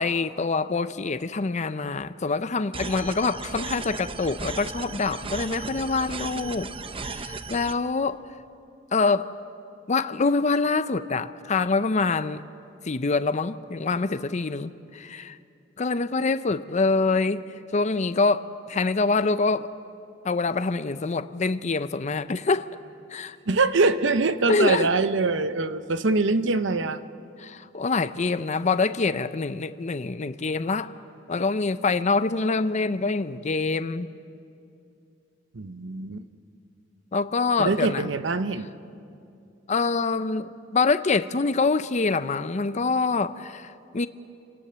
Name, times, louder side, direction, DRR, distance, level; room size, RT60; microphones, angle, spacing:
voice 1, 0.0-6.7 7.0-8.2 8.9-9.3 9.9-12.4 12.8-15.4 15.8-17.4 17.7-19.7 20.2-22.7 23.1-23.4 24.5-24.9 27.4-30.9 31.3-34.1 37.1-38.1 39.7-44.1, left 4 dB, 40° left, 0.6 m, -25 dB
sound 1, 2.7-7.7, right 3 dB, 30° right, 0.7 m, -35 dB
voice 2, 23.5-27.0 35.5-36.2 37.6-38.7, right 3 dB, 70° right, 0.8 m, -23 dB
28.5 x 18.5 x 6.9 m
head